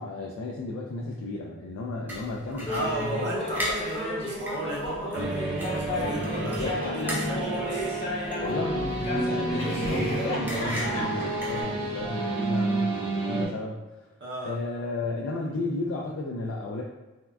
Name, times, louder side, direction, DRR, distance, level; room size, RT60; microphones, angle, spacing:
voice 1, 0.0-3.3 6.4-6.8 8.3-13.8 14.4-16.8, left 2 dB, 80° left, -2 dB, 0.3 m, -33 dB
sound 1, 2.1-12.1, equal, 10° right, 0.3 m, -39 dB
Laughter, 2.7-8.6 9.0-11.6, left 1 dB, 30° left, 0.6 m, -33 dB
voice 2, 2.7-7.9 14.2-14.5, right 1 dB, 60° right, -4 dB, 0.7 m, -35 dB
pumpkin horror, 5.1-13.5, right 2 dB, 90° right, 1.0 m, -30 dB
3.5 x 2.2 x 2.3 m, 1.1 s
head